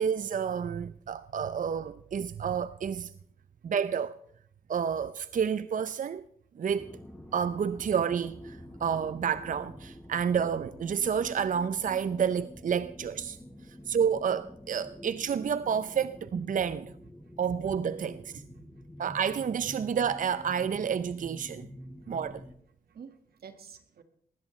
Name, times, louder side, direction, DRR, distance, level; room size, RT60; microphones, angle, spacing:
voice 1, 0.0-3.1 3.6-4.2 4.7-6.3 6.6-7.0 7.3-13.4 13.7-16.9 17.4-18.4 19.0-21.7 22.1-22.4, right 7 dB, 55° right, 0.5 m, -30 dB
sound 1, 6.7-22.6, left 1 dB, 10° left, 4.0 m, -48 dB
voice 2, 18.3-18.8 22.0-22.1 22.9-24.0, right 6 dB, 75° right, 1.7 m, -50 dB
20.0 x 15.5 x 3.2 m
cardioid pair, 60°, 16 cm